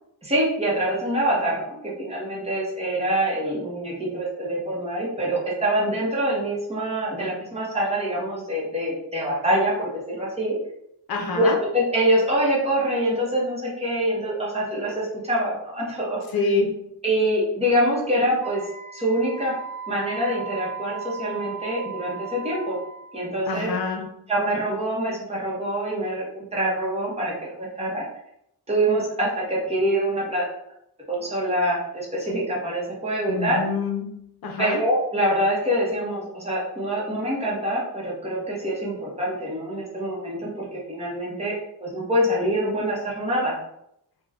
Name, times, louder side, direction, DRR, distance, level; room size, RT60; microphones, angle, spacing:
voice 1, 0.2-10.6 11.3-16.2 17.0-18.6 18.9-19.5 19.9-22.8 23.1-23.7 24.3-28.0 28.7-30.4 31.1-33.6 34.6-41.5 41.8-43.6, right 1 dB, 15° right, -6 dB, 0.9 m, -25 dB
voice 2, 11.1-11.6 16.3-16.8 23.5-24.0 33.3-34.8, left 4 dB, 65° left, 2 dB, 0.6 m, -26 dB
Wind instrument woodwind instrument, 18.4-23.2, right 6 dB, 50° right, 0.5 m, -37 dB
2.4 x 2.2 x 3.3 m, 0.76 s
wide cardioid pair, 175°, 40 cm